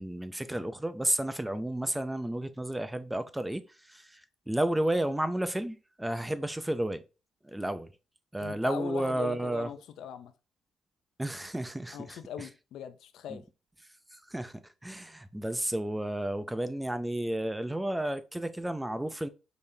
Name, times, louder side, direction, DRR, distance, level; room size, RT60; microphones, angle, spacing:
voice 1, 0.0-7.0 7.4-7.9 8.3-9.7 11.2-12.5 13.3-13.4 14.1-19.3, right 1 dB, 10° right, 0.4 m, -32 dB
voice 2, 8.4-10.3 11.9-13.4, left 9 dB, 80° left, 0.5 m, -41 dB
5.1 x 3.4 x 2.7 m
cardioid pair, 90°, 0 cm